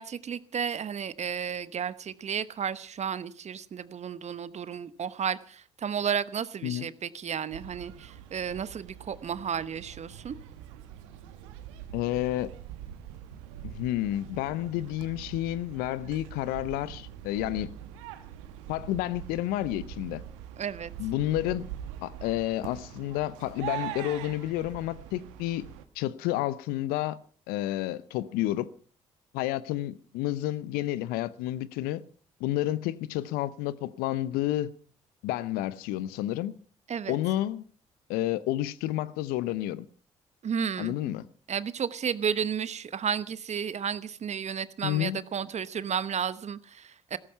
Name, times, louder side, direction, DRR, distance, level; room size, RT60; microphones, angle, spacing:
voice 1, 0.0-10.4 20.6-20.9 36.9-37.2 40.4-40.9 41.5-47.2, right 7 dB, 45° right, 1.0 m, -32 dB
sound 1, 7.5-25.9, right 11 dB, 80° right, 1.1 m, -43 dB
voice 2, 11.9-12.5 13.6-17.7 18.7-20.2 21.0-21.7 22.0-25.7 26.0-27.2 27.5-28.7 29.3-32.0 32.4-34.7 35.2-36.5 37.1-37.6 38.1-39.9 40.8-41.2 44.8-45.2, left 14 dB, 75° left, 0.8 m, -30 dB
16.0 x 14.0 x 5.7 m
hypercardioid pair, 45°, 16 cm